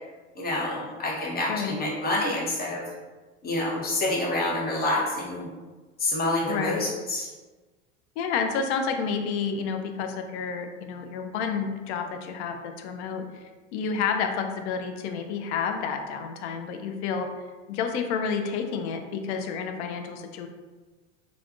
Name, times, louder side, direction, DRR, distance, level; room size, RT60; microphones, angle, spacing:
voice 1, 0.4-2.8 3.4-5.5 6.0-7.3, left 2 dB, 25° left, -4 dB, 1.0 m, -27 dB
voice 2, 6.5-6.9 8.2-13.2 13.7-17.3 17.7-20.5, left 6 dB, 65° left, 6 dB, 0.5 m, -30 dB
3.4 x 2.3 x 2.4 m, 1.3 s
hypercardioid pair, 80°, 37 cm